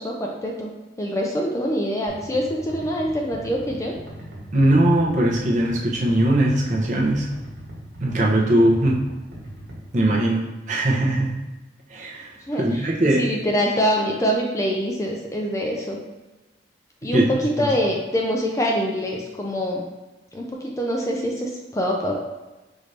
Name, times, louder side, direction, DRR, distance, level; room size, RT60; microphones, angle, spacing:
voice 1, 0.0-3.9 12.5-16.0 17.0-19.8 20.3-22.1, equal, 15° left, -1 dB, 0.4 m, -25 dB
sound 1, 2.1-10.0, right 1 dB, 80° right, 1.4 m, -39 dB
voice 2, 4.5-7.3 8.0-9.0 9.9-11.3 11.9-13.3 17.1-17.2 17.6-17.7, right 1 dB, 45° right, -3 dB, 0.8 m, -20 dB
5.0 x 2.6 x 3.2 m, 1.1 s
head